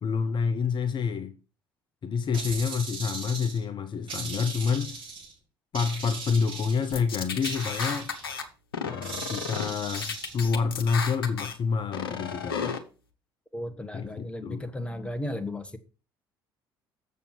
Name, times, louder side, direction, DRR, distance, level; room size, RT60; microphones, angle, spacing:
voice 1, 0.0-1.3 2.0-5.0 5.7-8.1 8.8-12.8 13.9-14.7, left 5 dB, 40° left, 0.8 m, -28 dB
sound 1, 2.3-3.6 4.1-5.3 5.7-7.0 7.4-8.4 9.0-10.3, right 4 dB, 45° right, 4.2 m, -38 dB
sound 2, 6.9-8.4 8.7-9.7 9.9-11.5 11.9-12.8, left 6 dB, 80° left, 1.0 m, -33 dB
voice 2, 13.5-15.8, left 1 dB, 10° left, 1.3 m, -35 dB
7.3 x 6.9 x 4.5 m
figure-of-eight pair, 55°, 12 cm